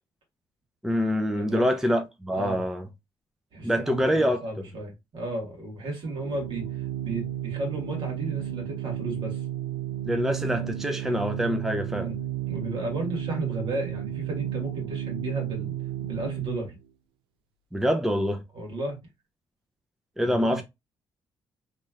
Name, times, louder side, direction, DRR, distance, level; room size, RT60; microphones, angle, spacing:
voice 1, 0.8-2.9 3.6-4.4 10.1-12.1 17.7-18.4 20.2-20.6, equal, 5° right, 0.5 m, -25 dB
voice 2, 1.4-1.7 2.3-2.6 3.5-9.4 11.9-12.2 12.5-15.7 16.1-16.8 18.5-19.0 20.2-20.6, right 1 dB, 65° right, 1.8 m, -34 dB
Organ, 6.1-16.8, right 12 dB, 90° right, 0.4 m, -33 dB
3.1 x 2.9 x 2.4 m
cardioid pair, 85°, 9 cm